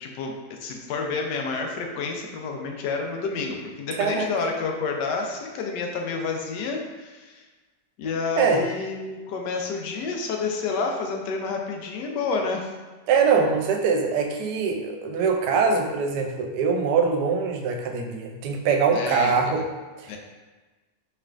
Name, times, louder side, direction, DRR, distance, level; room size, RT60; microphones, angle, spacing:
voice 1, 0.0-7.4 8.0-12.7 18.9-19.6 20.1-20.2, left 4 dB, 75° left, 2 dB, 1.2 m, -29 dB
voice 2, 13.1-19.6 20.0-20.1, right 5 dB, 75° right, 3 dB, 1.1 m, -23 dB
4.4 x 3.3 x 2.4 m, 1.3 s
omnidirectional pair, 1.9 m